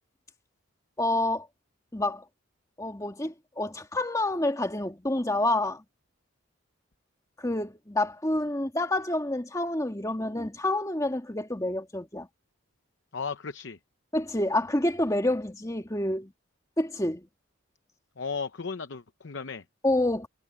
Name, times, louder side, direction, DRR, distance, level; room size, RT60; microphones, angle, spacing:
voice 1, 1.0-1.5 1.9-2.2 2.8-5.8 7.4-12.3 14.1-16.3 16.8-17.3 19.8-20.3, left 1 dB, 15° left, 1.9 m, -28 dB
voice 2, 13.1-13.8 18.2-19.6, left 5 dB, 60° left, 0.7 m, -35 dB
head